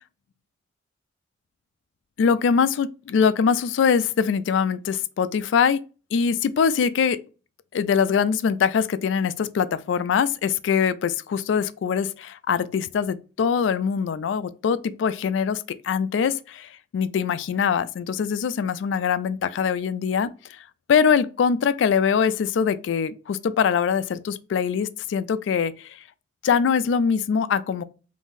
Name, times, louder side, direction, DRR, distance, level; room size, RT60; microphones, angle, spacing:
voice 1, 2.2-5.8 6.1-7.2 7.7-20.3 20.9-25.9 26.4-27.8, left 6 dB, 75° left, 0.3 m, -23 dB
3.6 x 2.6 x 2.6 m
head